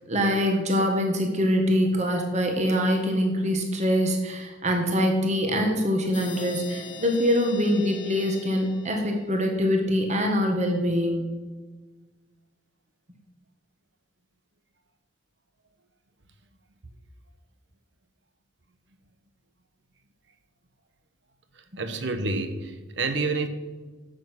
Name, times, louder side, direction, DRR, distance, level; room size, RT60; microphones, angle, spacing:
voice 1, 0.1-11.4 21.7-21.8, equal, 35° right, 2 dB, 1.7 m, -24 dB
sound 1, 6.1-9.7, left 4 dB, 75° left, 1.9 m, -41 dB
voice 2, 21.8-23.5, right 3 dB, 65° right, 9 dB, 1.2 m, -28 dB
11.5 x 7.9 x 6.1 m, 1.3 s
head